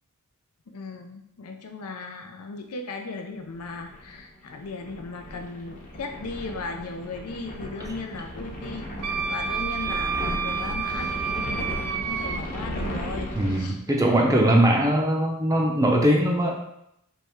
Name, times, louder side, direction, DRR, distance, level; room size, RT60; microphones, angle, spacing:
voice 1, 0.7-8.9 9.3-13.8, left 3 dB, 75° left, 4 dB, 0.5 m, -37 dB
sound 1, 3.6-13.6, equal, 35° left, 0.9 m, -35 dB
Wind instrument woodwind instrument, 9.0-12.4, right 6 dB, 80° right, 0.4 m, -29 dB
voice 2, 13.3-16.6, right 1 dB, 15° right, -1 dB, 0.6 m, -21 dB
3.4 x 3.1 x 4.5 m, 0.77 s
head